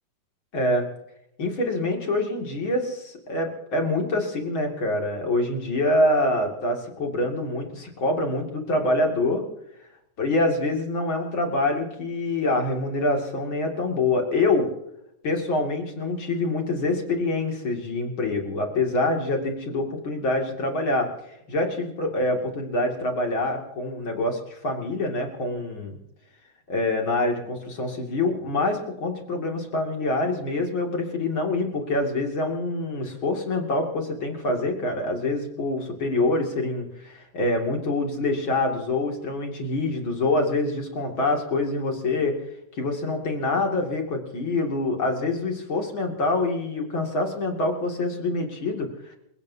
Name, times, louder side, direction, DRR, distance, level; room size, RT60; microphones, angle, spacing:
voice 1, 0.5-0.9 1.4-9.4 10.2-14.7 15.2-21.1 21.5-26.0 26.7-42.4 42.8-48.9, left 2 dB, 40° left, 2 dB, 3.0 m, -25 dB
28.5 x 17.0 x 2.8 m, 0.82 s
omnidirectional pair, 3.7 m